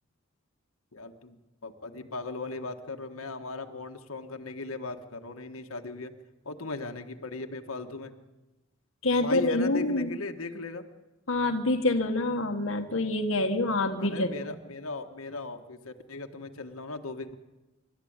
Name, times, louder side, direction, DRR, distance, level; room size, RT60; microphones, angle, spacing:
voice 1, 0.9-6.1 6.4-8.2 9.2-10.9 14.0-17.4, left 3 dB, 90° left, 5 dB, 1.5 m, -38 dB
voice 2, 9.0-10.1 11.3-14.3, left 2 dB, 65° left, 4 dB, 1.3 m, -26 dB
26.0 x 12.5 x 8.8 m, 1.1 s
head